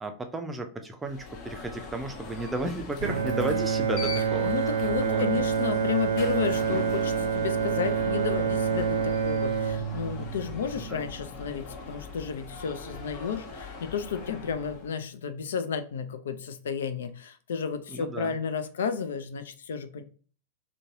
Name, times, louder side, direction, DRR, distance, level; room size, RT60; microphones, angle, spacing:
voice 1, 0.0-4.5 5.0-5.3 10.8-11.1 17.9-18.3, right 2 dB, 15° right, 6 dB, 0.4 m, -33 dB
Alarm, 1.0-15.0, left 3 dB, 40° left, 0.7 m, -41 dB
Bowed string instrument, 3.0-11.2, right 6 dB, 65° right, 0.6 m, -27 dB
voice 2, 4.4-20.0, left 6 dB, 65° left, 11 dB, 0.3 m, -32 dB
3.8 x 2.2 x 2.6 m, 0.40 s
figure-of-eight pair, 90°, 0 cm